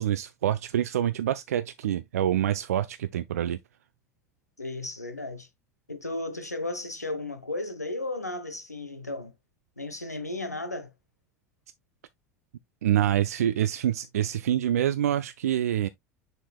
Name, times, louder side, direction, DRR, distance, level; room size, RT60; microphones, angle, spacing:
voice 1, 0.0-3.6 12.8-15.9, right 11 dB, 70° right, 0.4 m, -26 dB
voice 2, 4.6-5.5 5.9-9.3 9.8-10.9, left 2 dB, 90° left, 1.0 m, -34 dB
6.8 x 6.1 x 2.3 m
figure-of-eight pair, 75°, 9 cm